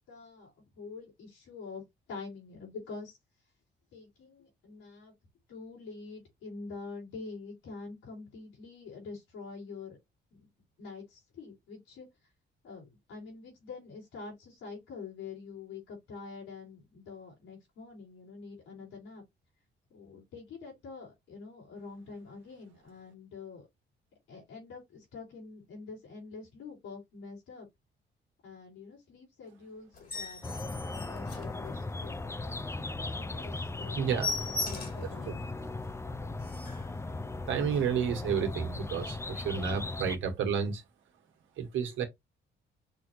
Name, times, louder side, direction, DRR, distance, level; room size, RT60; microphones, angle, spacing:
voice 1, 0.1-3.2 3.9-5.1 5.5-10.0 10.3-10.4 10.8-12.1 12.6-19.2 19.9-23.7 24.3-27.7 28.4-32.1 33.2-35.6, left 4 dB, 90° left, 3.8 m, -46 dB
sound 1, 29.9-32.1 32.5-32.7 33.0-33.1 33.4-33.6 33.8-35.1 35.6-35.7 36.1-36.2 36.4-36.9 37.6-37.8, left 3 dB, 50° left, 2.0 m, -38 dB
sound 2, 30.4-40.2, left 2 dB, 15° left, 0.5 m, -38 dB
voice 2, 34.0-34.3 35.3-35.4 37.5-40.8 41.6-42.0, right 7 dB, 80° right, 1.5 m, -31 dB
6.1 x 2.7 x 2.9 m
cardioid pair, 90°, 20 cm